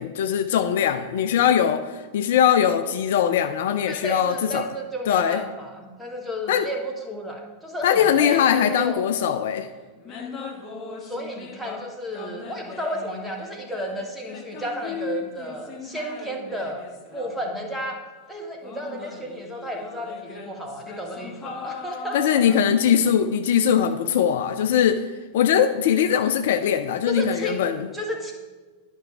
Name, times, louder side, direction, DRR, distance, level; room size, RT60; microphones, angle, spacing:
voice 1, 0.0-4.7 5.1-5.4 6.5-6.7 7.8-9.7 22.1-25.0 25.3-27.8, left 9 dB, 55° left, 9 dB, 0.4 m, -21 dB
voice 2, 3.9-9.0 11.0-16.8 17.1-18.0 18.3-22.4 27.1-27.7 27.9-28.3, equal, ahead, 0 dB, 1.4 m, -33 dB
sound 1, 10.0-11.9 12.1-18.0 18.6-23.1, left 5 dB, 30° left, 1.1 m, -39 dB
11.0 x 5.6 x 3.6 m, 1.3 s
figure-of-eight pair, 90°, 0 cm